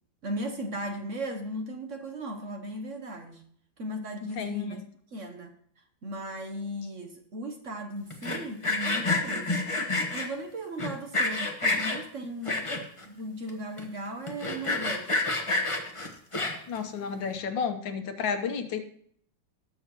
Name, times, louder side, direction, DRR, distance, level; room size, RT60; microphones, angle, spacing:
voice 1, 0.2-3.4 3.8-4.8 5.1-5.5 6.0-9.6 10.1-12.7 13.0-15.3, right 1 dB, 50° right, 5 dB, 1.1 m, -37 dB
voice 2, 4.4-4.8 16.7-18.8, left 6 dB, 85° left, 7 dB, 1.8 m, -31 dB
Sawing, 8.1-10.3 10.8-12.0 12.4-13.0 13.5-13.6 13.8-13.9 14.3-16.8, left 2 dB, 20° left, 1.2 m, -28 dB
19.0 x 7.1 x 3.0 m, 0.63 s
omnidirectional pair, 2.0 m